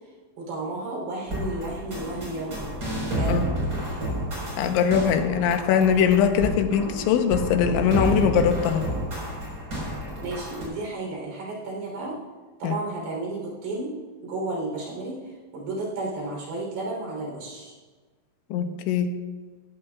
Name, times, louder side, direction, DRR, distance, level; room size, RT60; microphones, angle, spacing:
voice 1, 0.4-2.7 3.1-3.4 10.2-12.2 12.6-14.0 14.2-17.8, right 2 dB, 60° right, -2 dB, 5.4 m, -32 dB
sound 1, 1.3-10.6, right 1 dB, 25° right, 4.8 m, -30 dB
voice 2, 4.6-8.9 12.6-12.8 18.5-19.1, left 7 dB, 85° left, 7 dB, 3.2 m, -21 dB
18.5 x 14.5 x 2.4 m, 1.4 s
omnidirectional pair, 5.3 m